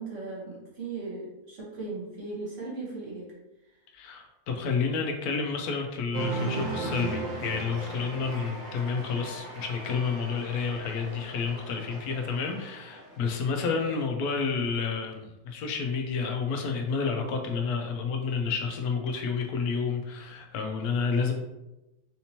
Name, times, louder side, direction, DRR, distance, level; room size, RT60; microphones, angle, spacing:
voice 1, 0.0-3.3, right 3 dB, 55° right, -6 dB, 1.5 m, -37 dB
voice 2, 3.9-21.3, left 5 dB, 75° left, 4 dB, 1.0 m, -30 dB
Cheering, 6.1-13.2, right 3 dB, 70° right, 1.3 m, -37 dB
4.3 x 2.8 x 2.8 m, 0.96 s
omnidirectional pair, 1.6 m